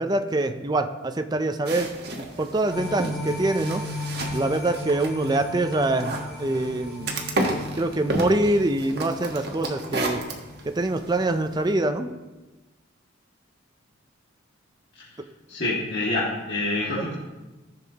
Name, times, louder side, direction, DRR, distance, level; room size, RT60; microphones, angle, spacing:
voice 1, 0.0-1.9 2.2-3.8 4.3-7.1 7.8-10.2 10.7-12.1 16.9-17.0, right 2 dB, 20° right, 8 dB, 0.4 m, -25 dB
sound 1, 1.6-11.7, right 2 dB, 50° right, 1.3 m, -33 dB
sound 2, 2.7-11.1 11.5-11.6, left 2 dB, ahead, 2.2 m, -36 dB
voice 2, 15.5-17.1, left 2 dB, 55° left, -8 dB, 2.0 m, -27 dB
14.5 x 7.1 x 2.9 m, 1.1 s
head